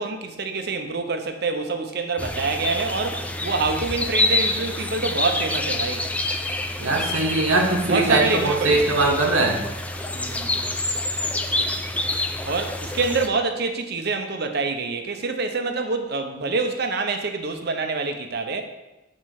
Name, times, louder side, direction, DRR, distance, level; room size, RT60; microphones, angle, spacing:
voice 1, 0.0-6.1 7.9-8.9 10.1-10.7 12.4-18.6, right 3 dB, 50° right, 6 dB, 0.8 m, -26 dB
sound 1, 2.2-13.3, left 2 dB, 5° left, 0.4 m, -27 dB
voice 2, 6.8-9.6, right 2 dB, 85° right, 1 dB, 1.3 m, -21 dB
6.3 x 4.4 x 6.4 m, 1.0 s
head